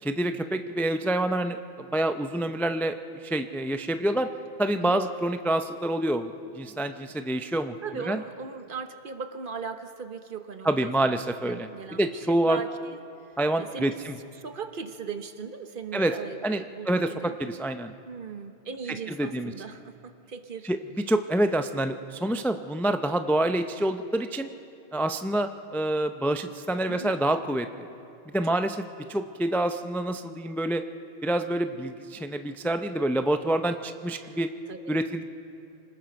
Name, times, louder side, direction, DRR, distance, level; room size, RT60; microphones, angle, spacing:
voice 1, 0.0-4.3 4.6-7.8 8.1-8.2 10.6-12.6 13.4-14.2 15.9-16.1 16.4-17.9 19.1-19.5 20.6-20.8 21.1-24.5 24.9-27.7 28.3-28.8 29.1-30.8 31.2-34.5 34.9-35.2, right 1 dB, 5° left, 8 dB, 0.4 m, -27 dB
voice 2, 7.8-11.2 11.4-13.0 13.6-14.0 14.4-17.4 18.1-20.7 26.9-27.2 28.5-28.6 29.0-29.2 34.2-34.4 34.7-35.0, right 5 dB, 55° right, 8 dB, 1.2 m, -38 dB
26.5 x 19.5 x 5.3 m, 2.6 s
omnidirectional pair, 1.1 m